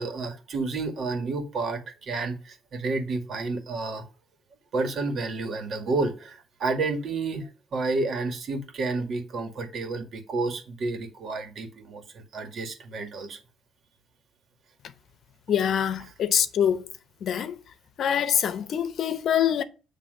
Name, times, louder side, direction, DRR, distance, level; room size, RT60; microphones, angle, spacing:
voice 1, 0.0-4.0 4.7-13.4, right 3 dB, 60° right, 2.0 m, -30 dB
voice 2, 15.5-16.9 17.2-17.6 18.0-19.6, left 9 dB, 65° left, 0.8 m, -24 dB
8.3 x 3.3 x 6.5 m
cardioid pair, 90°, 0 cm